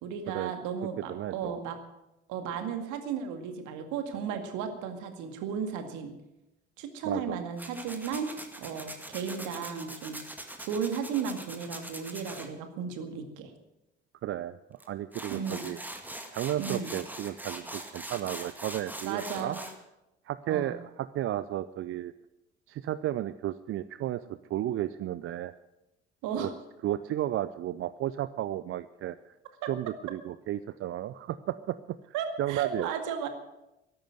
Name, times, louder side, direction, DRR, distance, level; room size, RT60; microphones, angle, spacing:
voice 1, 0.0-1.8 2.3-6.1 6.8-8.3 8.6-10.2 10.6-13.5 15.3-15.7 16.6-16.9 19.0-19.6 20.5-20.8 26.2-26.5 32.1-33.3, right 7 dB, 55° right, 7 dB, 2.1 m, -34 dB
voice 2, 1.1-1.6 7.0-7.4 14.2-15.8 16.3-19.6 20.3-22.1 22.7-25.5 26.4-26.5 26.8-29.3 29.6-32.0 32.4-32.9, right 13 dB, 35° right, 15 dB, 0.5 m, -33 dB
Tools, 7.6-12.5 14.8-14.9 15.1-19.8, right 1 dB, 5° right, 2.0 m, -42 dB
13.5 x 11.5 x 7.8 m, 0.92 s
figure-of-eight pair, 60°, 35 cm